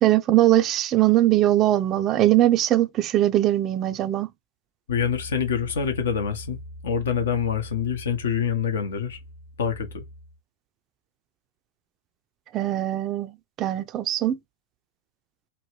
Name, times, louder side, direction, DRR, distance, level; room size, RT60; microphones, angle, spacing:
voice 1, 0.0-4.3 12.5-13.3 13.6-14.4, right 14 dB, 35° right, 0.4 m, -21 dB
voice 2, 4.9-9.2 9.6-10.0, left 7 dB, 65° left, 0.8 m, -26 dB
3.1 x 2.1 x 3.0 m
figure-of-eight pair, 100°, 0 cm